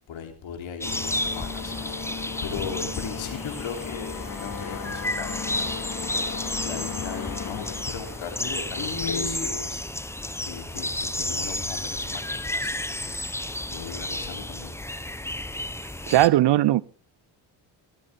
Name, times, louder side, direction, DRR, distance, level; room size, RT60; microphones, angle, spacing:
voice 1, 0.1-1.7 2.4-5.7 6.6-9.8 10.4-13.3 13.7-14.7, left 6 dB, 70° left, 3.4 m, -37 dB
sound 1, 0.8-9.5, left 6 dB, 40° left, 2.9 m, -36 dB
sound 2, 0.8-16.3, left 1 dB, 5° left, 0.9 m, -32 dB
voice 2, 16.1-16.8, right 15 dB, 60° right, 0.6 m, -18 dB
18.0 x 12.0 x 3.6 m
supercardioid pair, 75°, 49 cm